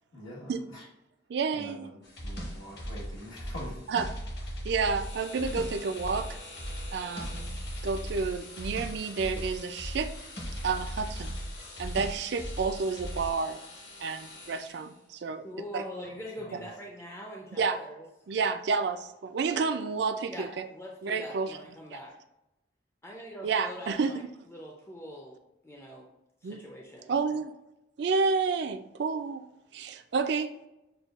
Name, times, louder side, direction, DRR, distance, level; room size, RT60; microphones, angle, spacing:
voice 1, 0.1-0.8 1.5-3.8 16.0-16.7, equal, 85° left, -6 dB, 1.5 m, -45 dB
voice 2, 1.3-1.9 3.9-4.1 4.6-6.4 6.9-7.6 7.8-10.1 10.6-11.4 11.8-13.6 14.0-15.4 15.7-15.8 17.6-17.8 18.3-20.7 21.0-21.6 21.9-22.0 23.4-24.3 26.4-26.6 27.1-27.5 28.0-29.4 29.7-30.5, right 4 dB, 60° right, 9 dB, 0.3 m, -30 dB
sound 1, 2.0-13.3, equal, 55° left, 1.0 m, -38 dB
sound 2, 4.9-15.1, left 2 dB, 70° left, 1.3 m, -48 dB
voice 3, 15.4-18.0 20.3-22.1 23.0-24.2 24.5-25.4 25.6-26.1 26.4-27.1, equal, 15° left, -1 dB, 0.4 m, -43 dB
6.7 x 2.2 x 2.4 m, 0.92 s
head